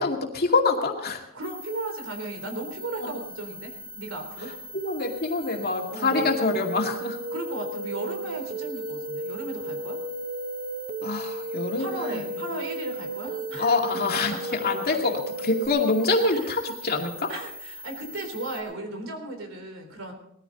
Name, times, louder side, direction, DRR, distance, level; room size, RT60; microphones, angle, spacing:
voice 1, 0.0-1.2 3.0-3.1 4.7-7.2 11.0-12.4 13.6-14.3 14.6-17.3, left 3 dB, 50° left, 2 dB, 2.3 m, -25 dB
voice 2, 1.3-4.5 5.9-6.4 7.3-10.0 11.8-15.0 16.3-16.5 17.3-20.1, right 2 dB, 70° right, 4 dB, 3.7 m, -36 dB
sound 1, 1.4-18.6, equal, 10° right, 4.0 m, -42 dB
sound 2, 6.1-15.7, right 1 dB, 45° right, 1.6 m, -34 dB
19.5 x 14.0 x 4.0 m, 0.75 s
head